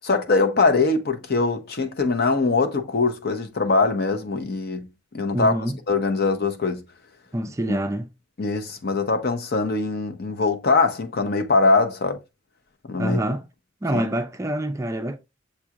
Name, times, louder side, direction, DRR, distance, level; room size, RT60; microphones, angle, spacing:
voice 1, 0.0-4.9 5.1-5.5 5.9-6.8 8.4-12.2 12.9-13.2 13.9-14.0, left 3 dB, 55° left, 0.7 m, -22 dB
voice 2, 5.3-5.8 7.3-8.1 13.0-13.5 13.8-15.2, right 1 dB, 15° right, 0.4 m, -26 dB
6.8 x 2.4 x 2.8 m
head